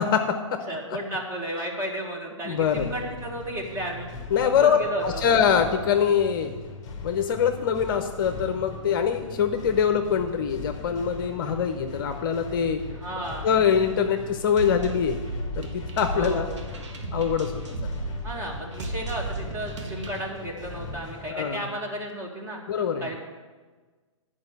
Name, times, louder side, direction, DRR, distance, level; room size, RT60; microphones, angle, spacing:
voice 1, 0.0-1.0 2.4-2.9 4.3-6.5 7.0-12.8 13.4-15.2 15.6-16.5 17.1-17.9 21.3-21.7 22.7-23.1, left 7 dB, 40° left, 6 dB, 0.7 m, -24 dB
voice 2, 0.7-4.1 4.4-5.2 12.9-13.5 16.1-16.5 18.2-22.6 23.0-23.2, right 1 dB, 15° right, -1 dB, 1.7 m, -33 dB
sound 1, 2.6-21.3, left 3 dB, 20° left, 1.3 m, -40 dB
sound 2, 14.6-20.2, right 2 dB, 60° right, 1.5 m, -34 dB
10.5 x 5.3 x 6.8 m, 1.4 s
figure-of-eight pair, 125°, 17 cm